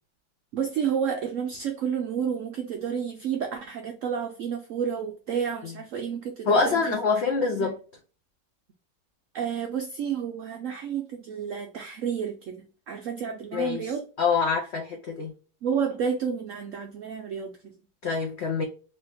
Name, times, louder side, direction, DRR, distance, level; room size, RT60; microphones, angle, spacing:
voice 1, 0.5-7.0 7.6-7.7 9.3-14.0 15.6-17.5, right 7 dB, 80° right, 0.7 m, -30 dB
voice 2, 6.5-7.8 13.5-15.3 18.0-18.6, left 4 dB, 80° left, 0.6 m, -25 dB
3.0 x 2.7 x 3.3 m
omnidirectional pair, 1.9 m